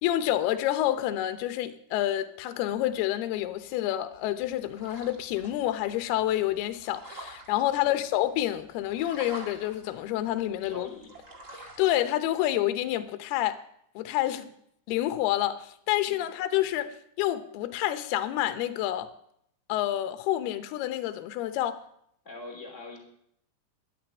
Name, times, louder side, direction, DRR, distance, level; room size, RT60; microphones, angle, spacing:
voice 1, 0.0-10.9 11.8-13.6 14.0-14.4 14.9-19.1 19.7-21.8, left 13 dB, 75° left, 2.6 m, -28 dB
sound 1, 4.1-12.0, right 1 dB, 55° right, 0.8 m, -48 dB
voice 2, 10.6-11.1 11.6-11.8 14.2-14.5 16.0-16.3 22.2-23.1, left 2 dB, 20° left, 2.7 m, -44 dB
12.5 x 9.3 x 8.8 m
omnidirectional pair, 5.2 m